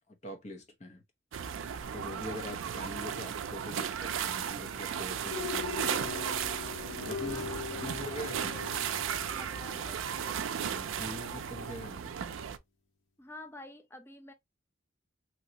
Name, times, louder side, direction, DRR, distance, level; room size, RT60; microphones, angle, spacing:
voice 1, 0.2-1.0 1.9-6.1 7.1-8.5 10.6-12.2, left 1 dB, 35° left, 0.8 m, -44 dB
sound 1, 1.3-12.6, right 8 dB, 75° right, 0.4 m, -35 dB
sound 2, 5.2-11.5, left 6 dB, 75° left, 1.1 m, -42 dB
voice 2, 7.2-8.0 8.3-8.6 9.2-10.0 13.2-14.3, left 1 dB, 10° left, 0.5 m, -49 dB
3.0 x 2.7 x 2.8 m
head